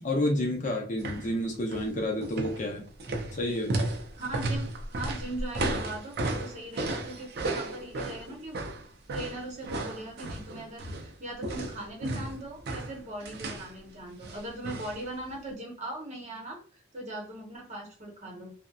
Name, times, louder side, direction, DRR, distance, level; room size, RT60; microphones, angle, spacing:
voice 1, 0.0-2.9 3.3-3.7, left 1 dB, 40° left, 1 dB, 0.6 m, -29 dB
sound 1, 1.0-1.3 1.6-1.9 2.2-11.1 11.4-13.7 14.2-15.0 15.3-15.4, right 2 dB, 60° right, 0.5 m, -34 dB
voice 2, 4.2-8.6 9.1-18.5, right 1 dB, 40° right, -1 dB, 0.8 m, -40 dB
2.6 x 2.1 x 2.3 m, 0.43 s
head